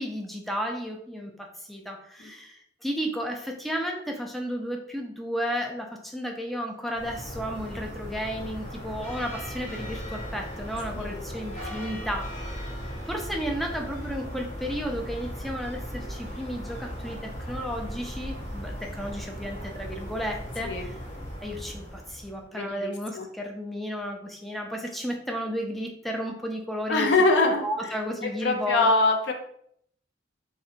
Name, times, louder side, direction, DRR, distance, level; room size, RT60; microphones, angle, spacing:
voice 1, 0.0-21.0 21.4-27.1 27.6-28.9, equal, ahead, 1 dB, 0.3 m, -33 dB
sound 1, 6.9-22.4, equal, 40° left, 0.8 m, -37 dB
voice 2, 22.5-23.3 26.9-28.0 28.4-29.3, left 2 dB, 65° left, 3 dB, 0.5 m, -24 dB
2.8 x 2.1 x 2.4 m, 0.67 s
head